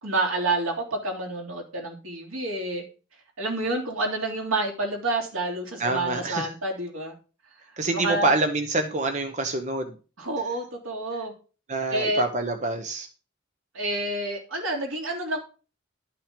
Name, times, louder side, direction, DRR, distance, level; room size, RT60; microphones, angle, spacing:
voice 1, 0.0-2.8 3.4-7.1 7.9-8.3 10.2-11.3 11.9-12.2 13.7-15.4, right 2 dB, 80° right, 1 dB, 3.1 m, -28 dB
voice 2, 5.8-6.5 7.8-10.0 11.7-13.1, right 2 dB, 35° right, 6 dB, 1.0 m, -26 dB
12.0 x 5.9 x 5.2 m, 0.35 s
head